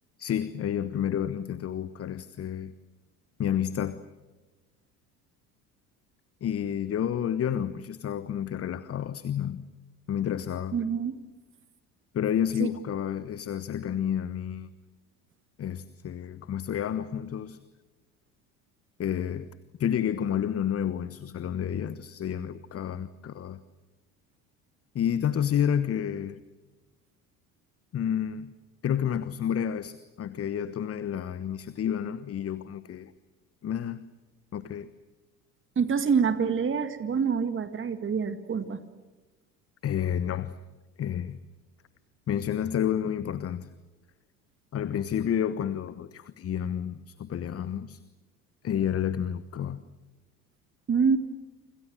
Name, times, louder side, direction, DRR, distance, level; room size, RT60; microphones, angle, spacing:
voice 1, 0.2-2.7 3.4-4.0 6.4-9.7 10.1-10.8 12.1-14.7 15.6-17.6 19.0-19.5 19.8-23.6 24.9-26.4 27.9-28.5 28.8-33.1 33.6-34.0 34.5-34.9 39.8-40.6 41.0-41.4 42.3-43.7 44.7-48.0 48.6-49.8, left 9 dB, 30° left, 15 dB, 1.2 m, -30 dB
voice 2, 10.7-11.2 12.6-12.7 35.8-38.8 50.9-51.2, right 6 dB, 25° right, 10 dB, 2.0 m, -26 dB
29.0 x 26.5 x 6.4 m, 1.2 s
figure-of-eight pair, 65°, 45 cm